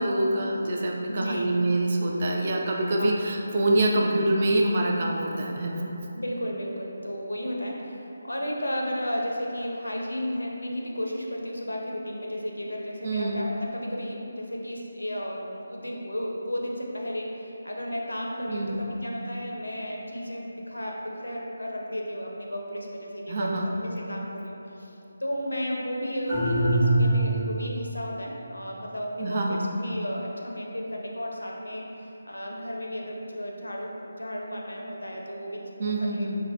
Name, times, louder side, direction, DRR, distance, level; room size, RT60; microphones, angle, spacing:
voice 1, 0.0-6.0 13.0-13.4 18.5-18.9 23.3-23.7 29.2-29.7 35.8-36.4, right 1 dB, 40° right, -1 dB, 0.3 m, -25 dB
voice 2, 1.1-1.5 3.0-3.1 3.8-4.1 6.1-36.3, equal, 80° left, -1 dB, 0.5 m, -33 dB
sound 1, 26.3-27.8, right 1 dB, ahead, 1.1 m, -23 dB
3.9 x 2.1 x 2.6 m, 3.0 s
figure-of-eight pair, 155°, 0 cm